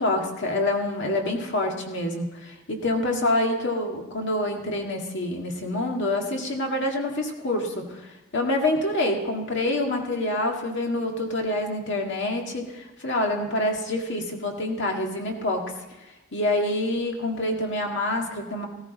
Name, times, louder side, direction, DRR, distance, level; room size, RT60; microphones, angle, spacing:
voice 1, 0.0-15.6 16.3-18.7, left 1 dB, 60° left, 2 dB, 1.8 m, -26 dB
16.0 x 14.5 x 4.0 m, 1.0 s
head